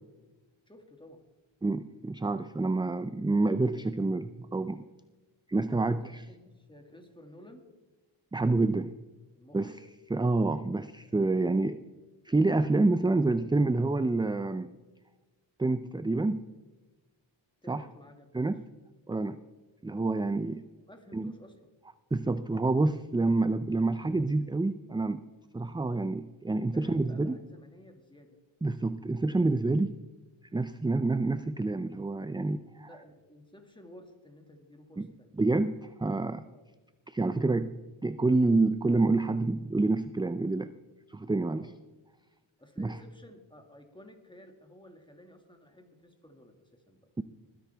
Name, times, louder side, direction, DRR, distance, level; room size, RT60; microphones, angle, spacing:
voice 1, 0.7-1.3 5.9-7.7 9.3-9.8 17.6-18.5 20.9-21.6 26.7-28.4 32.8-35.4 36.4-36.7 41.5-41.7 42.6-47.0, left 1 dB, 10° left, 4 dB, 2.0 m, -54 dB
voice 2, 1.6-4.8 5.5-6.2 8.3-8.9 9.5-9.7 10.1-11.8 12.3-14.7 15.6-16.4 17.7-17.8 18.3-18.7 19.1-19.4 19.8-20.6 21.1-21.3 22.1-25.2 25.5-27.4 28.6-30.0 30.5-32.9 35.0-35.1 35.4-36.4 37.1-37.7 38.0-40.7 41.1-41.7 42.8-43.0 47.2-47.3, right 2 dB, 10° right, 12 dB, 0.3 m, -28 dB
20.5 x 10.0 x 3.4 m, 1.2 s
wide cardioid pair, 65°, 48 cm